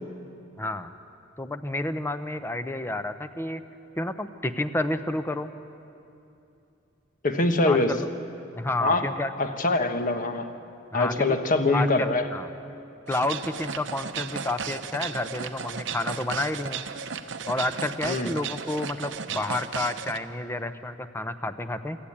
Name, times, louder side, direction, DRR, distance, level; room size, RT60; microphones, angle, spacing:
voice 1, 0.6-0.9 1.4-3.6 4.0-5.5 7.6-8.0 8.5-9.3 10.9-11.4 11.7-12.5 13.1-16.9 17.5-22.0, left 2 dB, 15° left, 10 dB, 0.7 m, -30 dB
voice 2, 7.2-7.9 8.8-9.0 9.4-10.5 10.9-12.3 18.0-18.3, left 2 dB, 45° left, 6 dB, 1.3 m, -23 dB
sound 1, 13.1-20.2, right 6 dB, 70° right, 0.8 m, -35 dB
25.0 x 13.0 x 8.8 m, 2.8 s
head